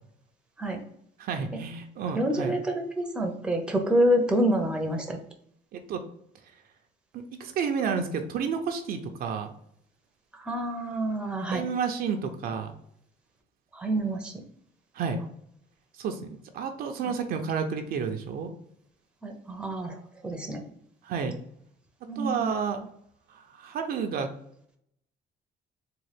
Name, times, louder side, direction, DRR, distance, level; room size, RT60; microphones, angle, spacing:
voice 1, 1.2-2.6 5.7-6.0 7.1-9.5 11.5-12.7 14.9-15.2 16.0-16.3 16.5-18.5 21.0-21.4 22.2-22.9 23.3-24.3, right 6 dB, 60° right, 5 dB, 0.6 m, -30 dB
voice 2, 2.1-5.2 10.4-11.6 13.7-14.4 19.2-20.0 20.2-20.6 22.1-22.5, right 1 dB, 5° right, 3 dB, 0.7 m, -27 dB
3.7 x 2.4 x 3.3 m, 0.70 s
cardioid pair, 110°, 17 cm